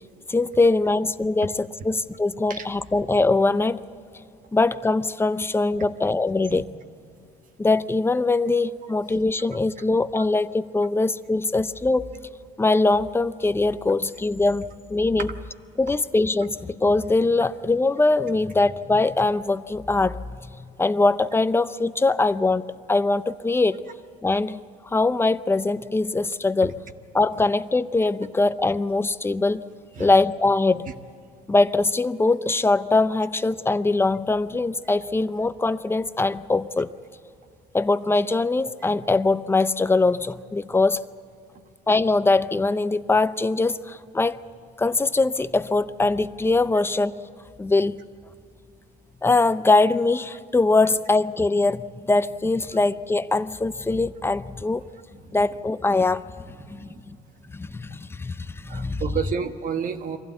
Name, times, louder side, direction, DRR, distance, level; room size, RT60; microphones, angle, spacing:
voice 1, 0.3-3.8 4.5-6.6 7.6-12.1 12.6-15.3 15.8-23.8 24.2-26.8 27.1-29.7 30.0-30.9 31.5-36.9 37.7-41.0 41.9-44.4 44.8-47.2 47.6-48.0 49.2-54.8 55.3-56.2 56.7-57.2 57.5-59.0, left 3 dB, 15° left, 14 dB, 0.6 m, -22 dB
voice 2, 56.6-57.0 58.4-60.2, right 7 dB, 50° right, 7 dB, 1.4 m, -31 dB
24.0 x 16.0 x 8.1 m, 2.5 s
cardioid pair, 110°, 17 cm